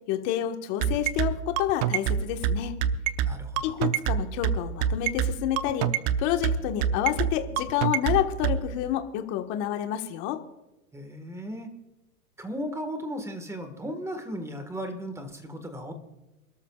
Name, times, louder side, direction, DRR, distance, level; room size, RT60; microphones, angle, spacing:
voice 1, 0.1-2.8 3.6-5.9 6.2-10.4, left 12 dB, 40° left, 5 dB, 1.5 m, -29 dB
sound 1, 0.8-8.6, right 9 dB, 30° right, 0.7 m, -25 dB
voice 2, 3.2-3.8 10.9-11.7 12.4-15.9, equal, 5° right, 7 dB, 1.6 m, -36 dB
28.0 x 13.0 x 2.4 m, 1.0 s
hypercardioid pair, 140°, 45 cm